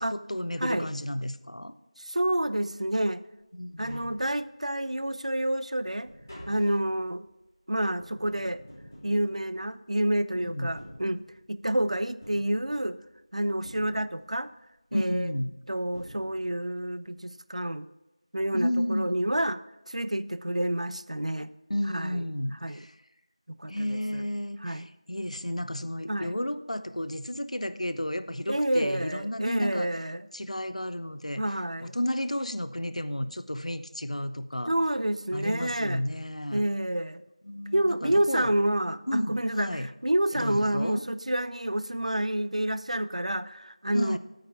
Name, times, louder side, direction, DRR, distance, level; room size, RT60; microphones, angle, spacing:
voice 1, 0.0-1.7 3.6-4.1 10.3-10.7 14.9-15.5 18.5-19.2 21.7-22.9 23.7-29.9 30.3-31.4 31.8-34.7 35.3-36.6 37.4-38.5 39.1-39.9 40.3-41.0 43.9-44.2, left 1 dB, 90° left, 13 dB, 0.6 m, -32 dB
voice 2, 2.0-3.2 3.8-6.1 6.5-7.3 7.7-8.6 9.0-11.2 11.5-13.0 13.3-14.5 14.9-15.3 15.7-17.9 18.3-19.6 19.9-21.5 21.9-22.2 22.5-22.9 23.5-24.2 24.6-24.8 26.1-26.3 28.5-30.3 31.4-31.9 34.7-36.0 36.5-37.2 37.7-44.2, right 1 dB, 90° right, 15 dB, 0.5 m, -29 dB
Tap, 3.4-3.5 3.7-4.8 5.2-10.0 10.6-11.7 12.2-13.2 13.6-14.5 15.5-15.6 15.9-16.8 17.0-17.1, equal, 30° left, 3.2 m, -50 dB
9.0 x 8.7 x 4.4 m, 1.0 s
figure-of-eight pair, 180°, 3 cm